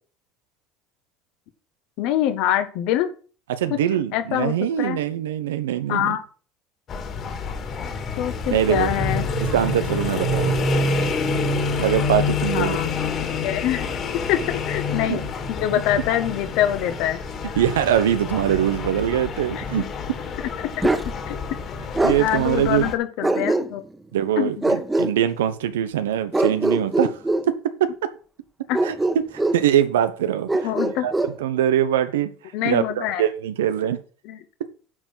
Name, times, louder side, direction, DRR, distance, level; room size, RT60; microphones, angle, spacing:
voice 1, 2.0-3.1 4.1-5.0 5.9-6.2 8.2-9.2 12.4-13.0 13.4-13.9 14.3-15.2 15.5-17.2 19.5-19.6 20.6-20.9 21.2-21.4 22.2-23.8 24.4-24.6 28.7-28.8 30.6-31.1 32.5-33.3 34.2-34.4, left 12 dB, 70° left, 1.6 m, -24 dB
voice 2, 3.5-6.2 8.5-9.0 9.4-10.6 11.8-12.8 15.1-15.3 17.5-19.8 22.0-22.9 24.1-27.2 27.8-27.9 28.8-28.9 29.3-30.7 31.0-31.1 31.4-32.3 32.6-34.0, right 10 dB, 90° right, 1.0 m, -22 dB
sound 1, 6.9-22.9, left 3 dB, 45° left, 2.6 m, -27 dB
Bark, 20.8-21.1 22.0-22.2 23.2-24.0 24.6-25.1 26.3-27.5 28.7-29.6 30.5-31.3, right 2 dB, 15° right, 1.5 m, -22 dB
10.5 x 4.6 x 7.8 m
hypercardioid pair, 80°, 0 cm